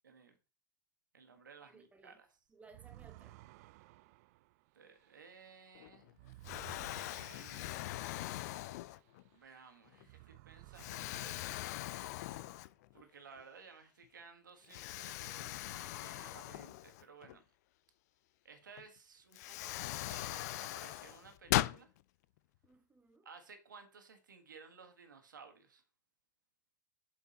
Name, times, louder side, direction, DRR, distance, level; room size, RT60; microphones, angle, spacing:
voice 1, 0.0-0.4 1.1-2.3 4.7-6.2 7.1-7.9 9.3-11.6 12.9-17.4 18.4-21.9 23.2-25.8, right 5 dB, 80° right, 1.6 m, -57 dB
voice 2, 1.6-2.2 2.5-3.4 13.0-13.1 22.6-23.3, right 3 dB, 15° right, 1.4 m, -61 dB
sound 1, 2.6-9.6 9.9-12.6, right 19 dB, 55° right, 0.4 m, -58 dB
Explosion, 5.7-6.1 6.4-9.3 9.9-10.0 10.8-13.0 13.4-13.5 14.7-17.3 18.8-18.9 19.3-21.8, left 16 dB, 60° left, 0.4 m, -40 dB
7.9 x 4.4 x 4.1 m
hypercardioid pair, 90°, 10 cm